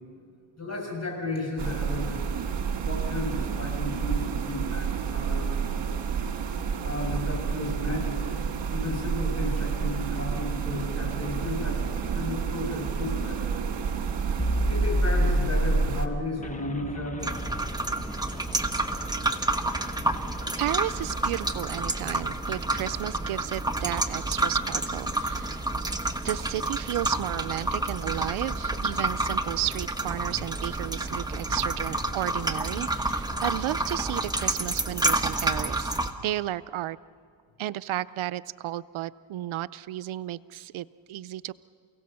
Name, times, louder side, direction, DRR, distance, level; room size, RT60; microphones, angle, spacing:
voice 1, 0.6-2.3 2.8-5.9 6.8-8.4 8.7-11.9 12.1-13.6 14.6-17.3 31.4-31.6, left 2 dB, 35° left, 0 dB, 7.0 m, -34 dB
sound 1, 1.6-16.1, right 7 dB, 65° right, 1.7 m, -30 dB
sound 2, 11.4-24.1, equal, 15° left, 1.3 m, -32 dB
sound 3, 17.2-36.1, right 2 dB, 10° right, 1.3 m, -29 dB
voice 2, 20.6-25.6 26.2-35.9 36.2-37.0 37.6-41.5, right 14 dB, 85° right, 16 dB, 0.6 m, -33 dB
29.0 x 17.0 x 6.8 m, 2.2 s
cardioid pair, 85°, 47 cm